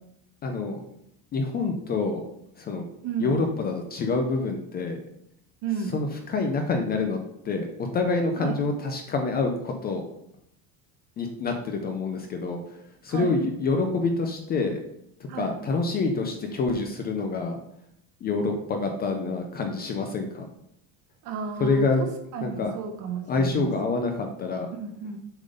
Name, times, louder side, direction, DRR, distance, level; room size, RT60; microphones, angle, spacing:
voice 1, 0.4-0.8 1.3-2.2 2.6-2.8 3.2-5.0 5.9-7.2 7.4-10.0 11.2-14.8 15.2-17.6 18.2-20.5 21.6-22.1 22.4-22.7 23.3-24.7, left 3 dB, 25° left, 4 dB, 0.5 m, -27 dB
voice 2, 3.0-3.4 5.6-5.9 8.4-8.6 13.1-13.3 15.3-15.5 21.2-23.7 24.8-25.2, right 6 dB, 45° right, 5 dB, 1.1 m, -32 dB
7.1 x 3.8 x 5.2 m, 0.76 s
cardioid pair, 165°, 41 cm